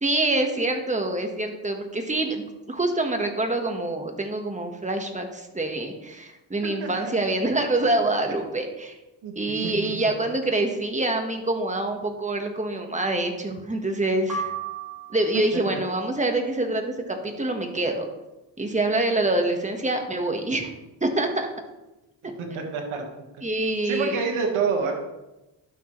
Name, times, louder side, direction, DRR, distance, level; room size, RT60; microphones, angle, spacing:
voice 1, 0.0-8.9 9.3-14.5 15.1-18.1 18.6-20.7 21.0-21.5 23.4-24.2, right 2 dB, 15° right, 4 dB, 1.3 m, -26 dB
voice 2, 6.8-7.1 7.8-7.9 9.2-9.3 9.6-10.1 15.7-15.8 22.4-23.0 23.8-24.9, right 5 dB, 85° right, 1 dB, 1.6 m, -28 dB
sound 1, 14.3-15.6, right 4 dB, 40° right, 2.3 m, -33 dB
11.5 x 6.5 x 3.1 m, 1.0 s
cardioid pair, 95°, 47 cm